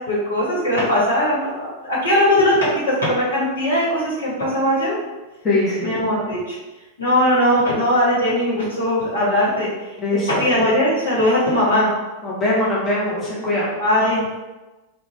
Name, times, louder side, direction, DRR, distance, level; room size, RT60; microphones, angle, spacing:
voice 1, 0.1-5.0 5.8-6.6 7.0-9.7 10.1-11.9 13.8-14.2, left 1 dB, 70° left, -7 dB, 1.1 m, -19 dB
voice 2, 5.4-6.0 10.0-10.5 12.2-13.7, left 1 dB, 20° left, -6 dB, 0.8 m, -21 dB
2.6 x 2.2 x 2.9 m, 1.1 s
figure-of-eight pair, 90°, 0 cm